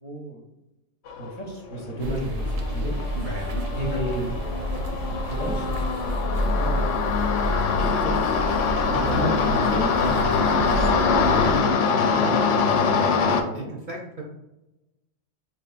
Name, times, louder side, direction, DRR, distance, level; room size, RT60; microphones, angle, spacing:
voice 1, 0.0-0.5 1.2-3.0 3.7-4.4 5.3-6.1 6.4-7.5 7.8-8.2 8.9-13.8, right 1 dB, 40° left, -2 dB, 0.7 m, -33 dB
sound 1, 1.1-1.3 1.7-13.4, left 5 dB, 85° left, 0.9 m, -24 dB
sound 2, 2.0-11.6, equal, 75° right, 0.9 m, -29 dB
voice 2, 3.1-3.7 4.8-5.0 13.5-14.2, right 1 dB, 50° right, -1 dB, 0.7 m, -36 dB
5.0 x 3.0 x 2.4 m, 0.96 s
omnidirectional pair, 1.2 m